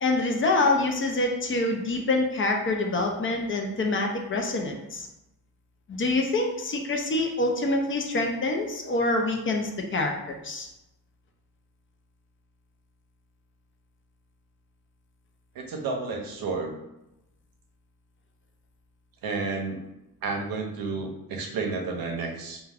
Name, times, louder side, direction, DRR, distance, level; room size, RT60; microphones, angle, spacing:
voice 1, 0.0-5.1 5.9-10.1 10.4-10.7, left 2 dB, 35° left, 2 dB, 0.4 m, -26 dB
voice 2, 15.5-16.8 19.2-19.8 20.2-22.6, right 4 dB, 80° right, 2 dB, 0.6 m, -31 dB
2.3 x 2.2 x 3.3 m, 0.91 s
cardioid pair, 115°, 35 cm